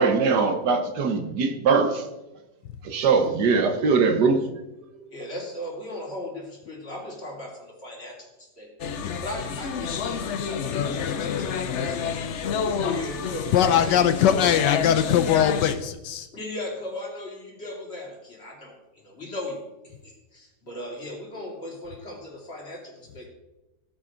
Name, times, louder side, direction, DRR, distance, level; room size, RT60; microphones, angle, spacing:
voice 1, 0.0-2.1 2.8-4.4, right 4 dB, 70° right, 7 dB, 1.6 m, -21 dB
voice 2, 5.1-8.7 9.2-14.0 16.3-23.3, left 1 dB, 35° left, -2 dB, 3.1 m, -37 dB
sound 1, 8.8-15.7, left 6 dB, 60° left, 0.8 m, -29 dB
voice 3, 13.5-16.3, left 9 dB, 80° left, 9 dB, 1.3 m, -21 dB
16.0 x 9.0 x 3.9 m, 1.0 s
omnidirectional pair, 1.9 m